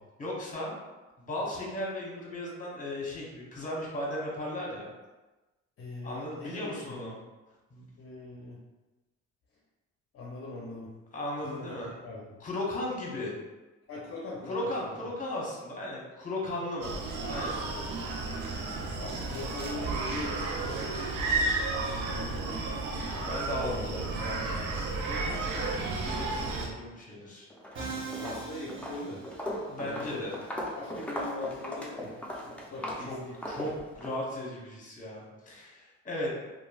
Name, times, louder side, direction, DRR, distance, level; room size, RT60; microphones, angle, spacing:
voice 1, 0.2-0.7 1.2-4.9 6.0-7.1 7.7-7.8 11.1-11.9 12.4-13.4 14.5-16.9 17.3-17.6 22.9-25.6 26.0-27.5 29.7-30.3 32.7-33.2 33.5-36.3, left 1 dB, 25° left, -4 dB, 1.0 m, -36 dB
voice 2, 5.8-7.2 8.0-8.6 10.1-10.9 11.6-12.4 13.9-15.1 18.5-18.7 18.9-20.9 21.8-23.2 23.7-24.5 28.2-29.2 29.9-30.3 30.7-32.1 32.4-33.3, left 2 dB, 45° left, -4 dB, 0.6 m, -41 dB
Screaming, 16.8-26.7, right 3 dB, 80° right, 0.5 m, -32 dB
Walk footsteps, 27.5-27.8 28.1-34.2, equal, 5° left, 0.5 m, -38 dB
Musical instrument, 27.8-29.8, right 4 dB, 40° right, 0.7 m, -40 dB
3.0 x 2.3 x 2.3 m, 1.1 s
cardioid pair, 90°, 30 cm